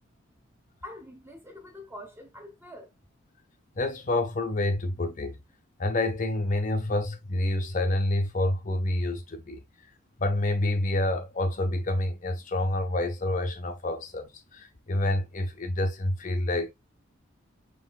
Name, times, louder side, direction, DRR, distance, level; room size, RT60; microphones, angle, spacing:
voice 1, 0.8-2.9, left 1 dB, 10° right, 0.9 m, -45 dB
voice 2, 3.8-5.4 5.8-9.6 10.2-16.7, left 1 dB, 40° left, 0.6 m, -28 dB
5.7 x 3.3 x 2.3 m
head